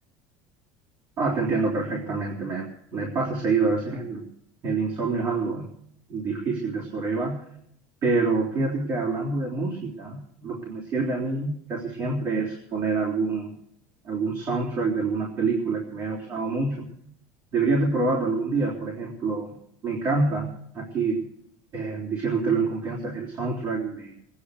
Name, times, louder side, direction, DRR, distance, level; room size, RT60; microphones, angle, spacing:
voice 1, 1.2-4.2 4.6-5.7 6.1-7.5 8.0-13.5 14.0-16.9 17.5-19.6 19.8-20.5 20.7-21.2 21.7-24.1, right 3 dB, 45° right, -4 dB, 3.6 m, -26 dB
20.0 x 10.0 x 6.6 m, 0.71 s
cardioid pair, 140°, 8 cm